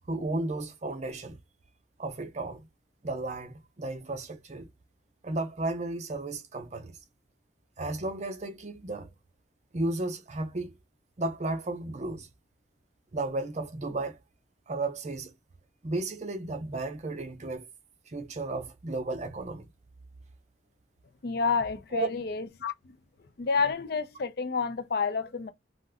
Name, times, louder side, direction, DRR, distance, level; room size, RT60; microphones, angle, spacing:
voice 1, 0.1-1.4 2.0-2.7 3.0-4.7 5.2-7.0 7.8-9.1 9.7-10.7 11.2-12.3 13.1-14.2 14.7-15.3 15.8-17.7 18.1-19.7 21.9-22.1, right 2 dB, 35° right, 0.5 m, -33 dB
voice 2, 21.2-23.0 23.4-25.5, left 5 dB, 55° left, 0.4 m, -29 dB
2.5 x 2.1 x 3.5 m
head